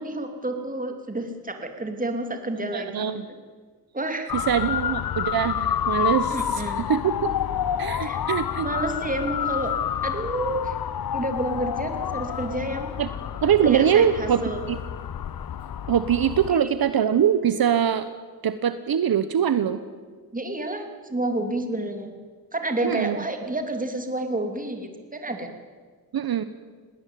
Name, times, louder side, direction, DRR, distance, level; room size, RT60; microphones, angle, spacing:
voice 1, 0.0-3.1 3.9-4.3 6.3-6.9 8.0-8.2 8.6-9.7 10.0-10.8 11.1-12.9 13.6-14.6 20.3-22.1 22.5-25.5, right 2 dB, 20° right, 5 dB, 3.0 m, -29 dB
voice 2, 2.7-3.2 4.3-6.6 6.9-7.3 7.8-8.7 13.0-13.1 13.4-14.4 14.7-14.8 15.9-18.1 18.4-19.8 22.8-23.2 26.1-26.4, right 8 dB, 70° right, 12 dB, 1.0 m, -23 dB
Motor vehicle (road) / Siren, 4.3-16.6, left 9 dB, 65° left, 0.8 m, -29 dB
19.5 x 18.0 x 9.2 m, 1.5 s
wide cardioid pair, 95°, 37 cm